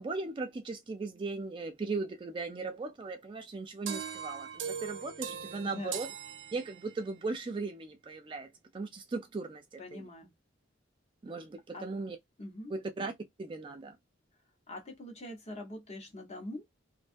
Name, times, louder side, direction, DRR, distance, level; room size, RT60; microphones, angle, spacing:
voice 1, 0.0-6.1 6.5-10.1 11.2-12.2 12.7-13.1 13.4-14.0, right 3 dB, 25° right, 0.3 m, -38 dB
sound 1, 3.9-7.2, right 7 dB, 75° right, 0.5 m, -40 dB
voice 2, 5.6-6.0 9.8-10.3 11.7-11.9 12.4-12.7 14.7-16.6, left 1 dB, 35° left, 0.8 m, -43 dB
2.5 x 2.3 x 2.5 m
head